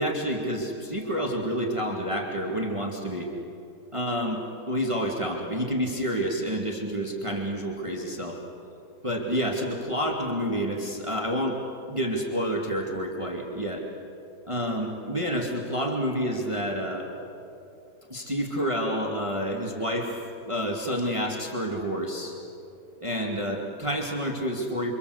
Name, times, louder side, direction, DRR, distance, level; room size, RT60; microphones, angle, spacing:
voice 1, 0.0-3.3 3.9-8.4 9.0-11.6 11.9-13.9 14.4-17.1 18.1-20.1 20.5-22.4 23.0-24.9, equal, 15° right, 0 dB, 2.4 m, -29 dB
28.5 x 25.0 x 8.0 m, 2.8 s
omnidirectional pair, 1.8 m